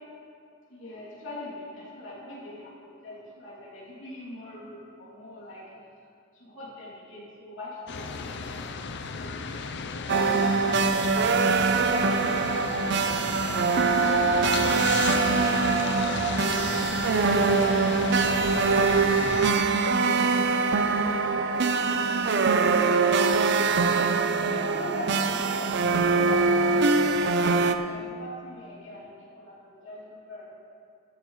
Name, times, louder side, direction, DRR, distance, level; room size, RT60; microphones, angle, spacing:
voice 1, 0.7-5.6 6.3-8.8 9.1-9.3 9.9-11.7 12.3-13.6 14.1-14.4 15.1-16.7 19.2-20.7 21.0-23.1 24.2-30.6, left 1 dB, 75° left, -7 dB, 2.8 m, -42 dB
sound 1, 7.9-19.5, left 5 dB, 60° left, 0.6 m, -34 dB
sound 2, 10.1-27.7, right 4 dB, 60° right, 0.5 m, -23 dB
14.5 x 12.0 x 3.2 m, 2.4 s
head